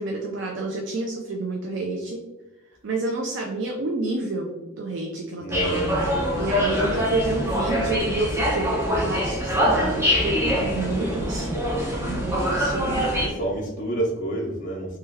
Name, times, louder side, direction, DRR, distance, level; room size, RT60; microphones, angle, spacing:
voice 1, 0.0-2.2 2.8-4.5 4.8-13.1, right 2 dB, 55° right, 1 dB, 0.3 m, -29 dB
voice 2, 5.4-7.1 13.2-15.0, right 1 dB, 35° left, -5 dB, 0.5 m, -30 dB
sound 1, 5.5-13.3, equal, 10° right, 0.6 m, -24 dB
3.1 x 2.2 x 3.3 m, 1.1 s
head